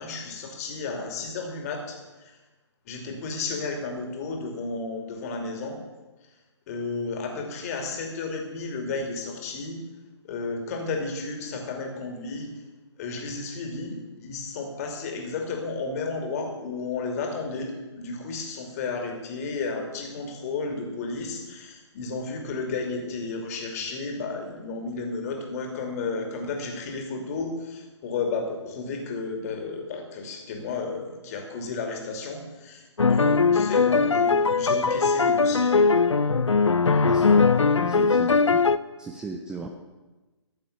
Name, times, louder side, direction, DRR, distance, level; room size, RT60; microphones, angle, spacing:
voice 1, 0.0-2.0 2.9-5.8 6.7-9.8 10.2-12.5 13.0-35.7, left 4 dB, 30° left, 3 dB, 2.6 m, -32 dB
sound 1, 33.0-38.8, left 4 dB, 75° left, 0.6 m, -20 dB
voice 2, 37.0-37.5 37.8-38.6 39.0-39.7, right 3 dB, 5° right, 3 dB, 0.5 m, -37 dB
13.5 x 7.4 x 8.1 m, 1.2 s
figure-of-eight pair, 135°, 15 cm